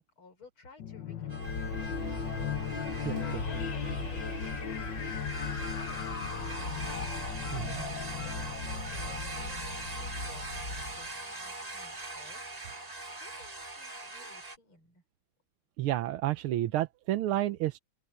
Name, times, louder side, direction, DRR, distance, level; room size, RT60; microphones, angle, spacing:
voice 1, 0.0-6.7 7.2-11.1 11.4-12.6 13.2-15.0, left 3 dB, 80° left, 6.5 m, -57 dB
sound 1, 0.8-11.0, left 7 dB, 65° left, 1.9 m, -38 dB
sound 2, 1.3-14.6, right 2 dB, 20° right, 1.6 m, -42 dB
Telephone, 1.4-11.1, left 1 dB, 40° left, 7.4 m, -41 dB
voice 2, 3.0-3.4 7.5-7.8 15.8-17.8, right 14 dB, 85° right, 1.7 m, -31 dB
open air
omnidirectional pair, 2.3 m